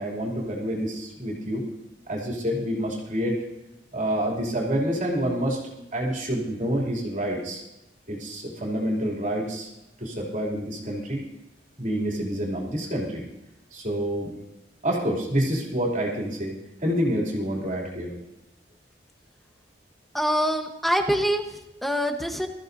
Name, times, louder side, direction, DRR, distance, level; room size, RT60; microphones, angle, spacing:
voice 1, 0.0-1.6 2.1-3.4 3.9-5.6 5.9-7.6 8.1-9.7 10.0-11.2 11.8-13.2 13.7-14.4 14.8-16.5 16.8-18.1, equal, 40° right, -2 dB, 2.9 m, -27 dB
voice 2, 20.1-22.5, equal, ahead, 4 dB, 1.1 m, -25 dB
22.0 x 14.0 x 2.7 m, 0.92 s
head